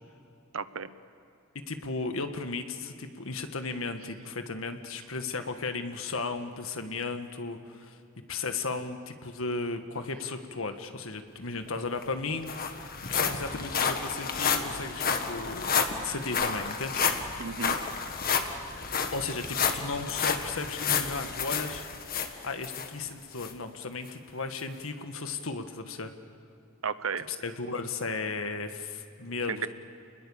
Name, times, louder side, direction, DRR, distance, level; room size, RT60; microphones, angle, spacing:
voice 1, 0.5-0.9 17.4-17.8 26.8-27.3 29.5-29.7, right 5 dB, 85° right, 13 dB, 1.0 m, -33 dB
voice 2, 1.7-8.0 8.3-12.5 13.1-17.0 19.1-21.8 22.4-26.1 27.3-29.7, left 3 dB, 80° left, 7 dB, 1.7 m, -35 dB
sound 1, 11.7-11.8 12.0-22.9 23.4-23.5 24.1-24.2, left 6 dB, 45° left, 1.6 m, -30 dB
29.5 x 21.0 x 7.1 m, 2.7 s
head